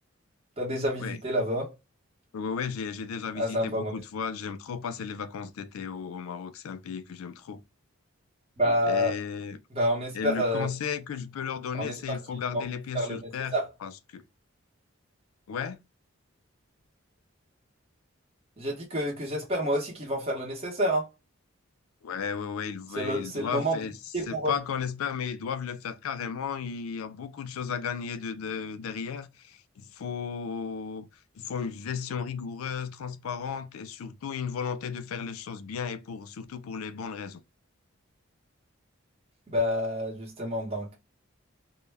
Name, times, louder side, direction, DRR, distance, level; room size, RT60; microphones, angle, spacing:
voice 1, 0.6-1.7 3.3-3.9 8.6-9.1 9.7-10.7 11.7-12.2 12.5-12.6 12.9-13.6 18.6-21.1 22.9-23.8 24.1-24.5 39.5-40.9, equal, 30° right, 0.8 m, -28 dB
voice 2, 2.3-7.6 8.9-9.6 10.1-13.6 13.8-14.2 15.5-15.8 22.0-24.0 24.3-31.1 31.4-37.4, left 6 dB, 85° left, 0.4 m, -34 dB
2.1 x 2.0 x 3.2 m
head